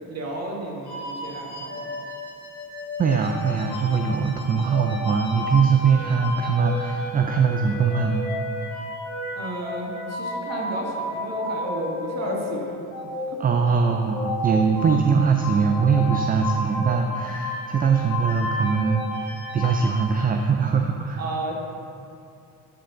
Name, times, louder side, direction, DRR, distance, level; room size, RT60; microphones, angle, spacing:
voice 1, 0.0-1.9 9.3-12.8 13.3-13.6 21.2-21.5, right 1 dB, 40° right, -2 dB, 1.5 m, -32 dB
sound 1, 0.8-20.0, left 1 dB, 45° left, 1.6 m, -32 dB
voice 2, 3.0-8.3 8.6-8.8 13.4-21.2, right 5 dB, 25° right, 4 dB, 0.4 m, -22 dB
9.1 x 3.9 x 3.9 m, 2.5 s
supercardioid pair, 70°, 39 cm